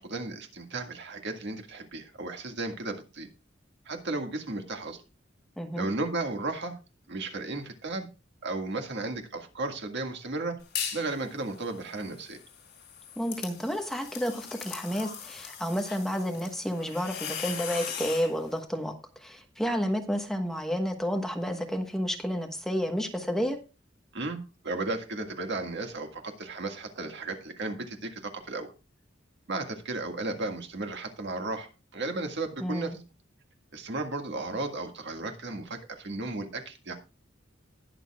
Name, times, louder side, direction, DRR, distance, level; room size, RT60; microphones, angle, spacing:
voice 1, 0.0-3.3 3.9-5.0 5.8-6.8 7.1-8.1 8.4-10.6 10.9-12.4 24.1-28.7 29.5-32.9 33.7-37.0, right 2 dB, 60° right, 5 dB, 1.8 m, -34 dB
voice 2, 5.6-5.9 13.2-18.9 19.2-23.6 32.6-33.0, equal, ahead, 4 dB, 1.2 m, -30 dB
sound 1, 10.6-11.1 11.5-18.3, left 8 dB, 55° left, 4.5 m, -39 dB
20.0 x 6.9 x 2.3 m, 0.30 s
head